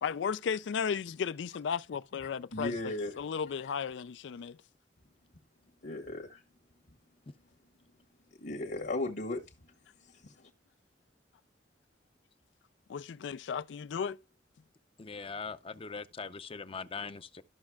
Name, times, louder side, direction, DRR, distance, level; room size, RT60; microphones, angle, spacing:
voice 1, 0.0-4.6 12.9-14.2, left 7 dB, 85° left, 0.4 m, -35 dB
voice 2, 2.5-3.1 5.8-6.4 8.4-9.4 10.2-10.3, left 2 dB, 70° left, 1.6 m, -35 dB
voice 3, 15.0-17.4, left 5 dB, 30° left, 0.6 m, -41 dB
13.5 x 6.2 x 2.3 m
head